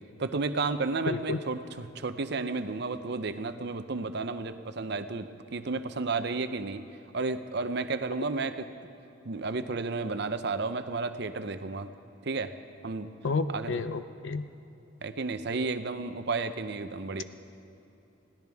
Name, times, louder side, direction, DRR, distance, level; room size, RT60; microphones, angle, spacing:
voice 1, 0.2-6.8 7.1-8.5 9.2-11.9 12.2-12.5 12.8-13.1 13.5-13.8 15.0-17.2, right 3 dB, 55° right, 10 dB, 0.7 m, -32 dB
voice 2, 1.1-1.4 13.2-14.4, left 3 dB, 70° left, 11 dB, 0.6 m, -30 dB
21.5 x 16.0 x 3.5 m, 2.9 s
head